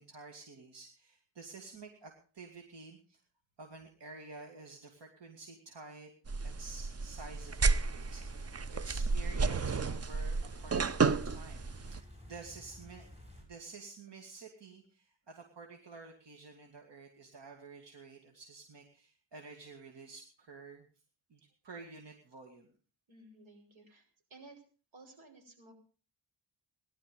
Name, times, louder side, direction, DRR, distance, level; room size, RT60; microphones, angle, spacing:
voice 1, 0.0-3.2 3.6-6.1 6.4-13.1 13.4-20.9 21.3-22.7, right 4 dB, 65° right, 3 dB, 2.6 m, -51 dB
sound 1, 6.3-12.0, right 4 dB, 35° right, 0.7 m, -32 dB
sound 2, 7.4-13.4, left 1 dB, 15° right, 6.9 m, -54 dB
voice 2, 23.1-24.6 24.9-25.7, right 2 dB, 90° right, 2 dB, 6.1 m, -56 dB
19.0 x 12.0 x 5.3 m, 0.38 s
wide cardioid pair, 120°, 45 cm